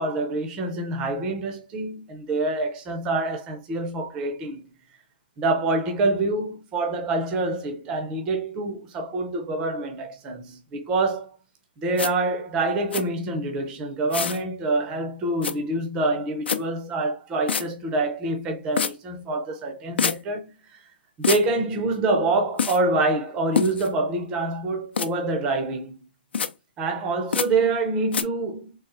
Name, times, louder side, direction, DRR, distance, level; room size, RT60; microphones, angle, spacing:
voice 1, 0.0-4.7 5.4-11.3 11.8-20.8 21.2-25.9 26.8-28.8, right 2 dB, 10° right, 0.5 m, -26 dB
sound 1, 12.0-12.1 12.9-13.0 14.1-14.4 15.4-15.5 16.5-16.6 17.5-17.6 18.8-18.9 20.0-20.2 21.2-21.4 22.6-22.8 23.6-23.9 25.0-25.1 26.3-26.5 27.3-27.5 28.1-28.2, left 6 dB, 80° left, 0.6 m, -25 dB
3.8 x 2.4 x 4.1 m
hypercardioid pair, 175°, 6 cm